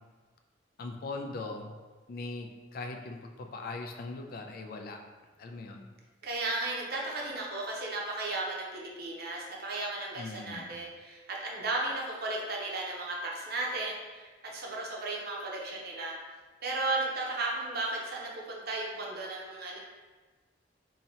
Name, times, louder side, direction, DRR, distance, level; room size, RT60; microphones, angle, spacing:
voice 1, 0.8-1.7 2.1-5.0 5.4-5.8 10.2-10.8, left 3 dB, 50° left, 4 dB, 0.3 m, -40 dB
voice 2, 6.2-16.1 16.6-19.8, right 2 dB, 55° right, -2 dB, 0.7 m, -35 dB
2.8 x 2.7 x 4.2 m, 1.3 s
head